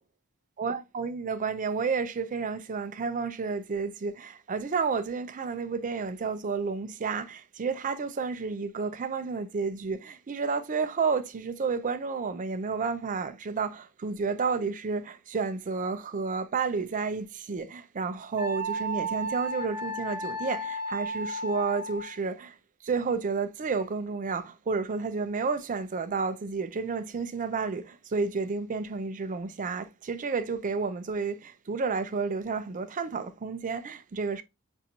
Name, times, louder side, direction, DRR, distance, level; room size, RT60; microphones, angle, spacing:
voice 1, 0.6-22.6 22.8-34.4, right 4 dB, 35° right, 0.4 m, -31 dB
Wind instrument woodwind instrument, 18.4-22.2, right 1 dB, 10° right, 1.0 m, -33 dB
5.6 x 2.5 x 2.8 m
head